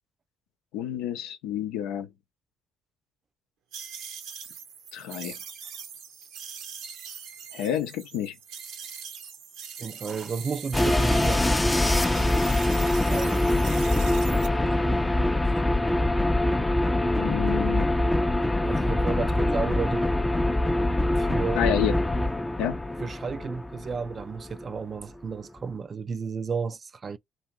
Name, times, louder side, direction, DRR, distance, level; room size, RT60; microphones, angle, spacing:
voice 1, 0.7-2.1 4.9-5.4 7.5-8.4 17.2-17.9 21.6-21.9 22.6-22.8, left 10 dB, 70° left, 0.5 m, -29 dB
sound 1, 3.7-11.5 11.8-14.5, right 7 dB, 65° right, 0.7 m, -41 dB
voice 2, 9.8-11.6 13.0-14.0 14.3-15.0 15.4-15.6 18.6-20.1 21.2-21.6 23.0-27.2, right 5 dB, 40° right, 0.4 m, -33 dB
sound 2, 10.7-24.6, left 1 dB, 15° left, 0.5 m, -24 dB
2.9 x 2.6 x 3.0 m
hypercardioid pair, 50°, 0 cm